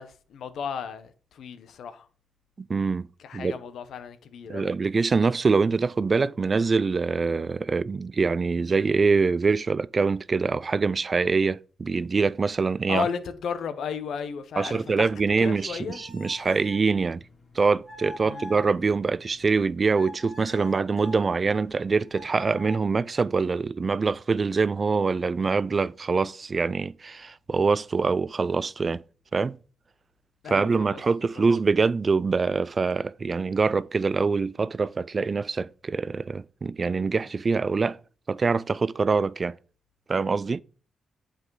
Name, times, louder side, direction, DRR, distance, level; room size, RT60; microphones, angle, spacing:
voice 1, 0.0-2.1 3.2-4.7 12.9-15.1 15.4-16.0 18.2-18.6 30.4-31.0 31.4-31.5, left 6 dB, 75° left, 0.9 m, -34 dB
voice 2, 2.6-3.1 3.3-3.6 4.5-13.1 14.6-17.2 17.6-29.0 29.3-29.6 30.5-38.0 38.3-39.5 40.1-40.6, right 4 dB, 40° right, 0.3 m, -24 dB
sound 1, 15.2-19.6 19.9-21.2 22.1-22.8, left 1 dB, 35° left, 2.8 m, -45 dB
7.6 x 5.1 x 4.7 m
cardioid pair, 70°, 0 cm